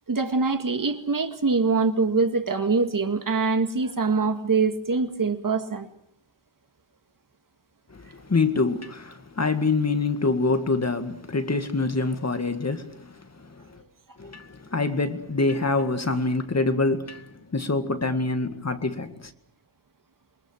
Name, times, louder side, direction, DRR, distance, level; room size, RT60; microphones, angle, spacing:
voice 1, 0.1-5.9, right 4 dB, 45° right, 2.0 m, -24 dB
voice 2, 7.9-13.8 14.2-19.3, left 3 dB, 35° left, 2.0 m, -26 dB
27.5 x 23.5 x 6.4 m
wide cardioid pair, 120°, 47 cm